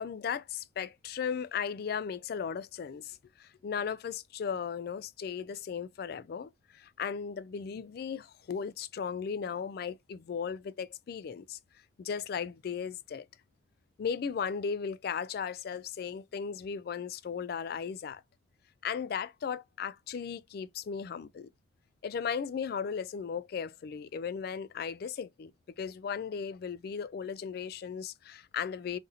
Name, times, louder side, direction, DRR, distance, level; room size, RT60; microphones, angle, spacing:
voice 1, 0.0-11.6 12.0-13.3 14.0-18.2 18.8-21.5 22.0-25.5 25.8-29.0, left 6 dB, 55° left, 0.3 m, -36 dB
2.5 x 2.5 x 4.1 m
head